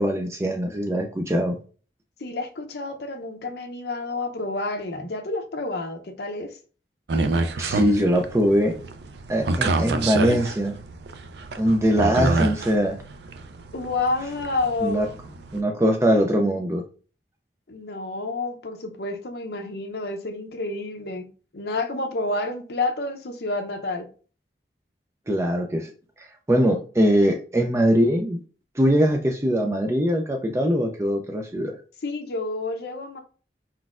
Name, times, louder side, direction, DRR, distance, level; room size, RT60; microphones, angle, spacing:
voice 1, 0.0-1.6 7.6-8.7 9.3-10.8 11.6-13.0 14.8-15.1 15.5-16.8 25.3-25.9 26.2-28.4 28.8-31.7, equal, 15° right, 0.3 m, -22 dB
voice 2, 2.2-6.6 13.7-15.1 17.7-24.1 32.0-33.2, left 2 dB, 70° left, 0.6 m, -29 dB
sound 1, 7.1-15.6, right 3 dB, 75° right, 0.4 m, -28 dB
4.3 x 4.1 x 2.4 m
head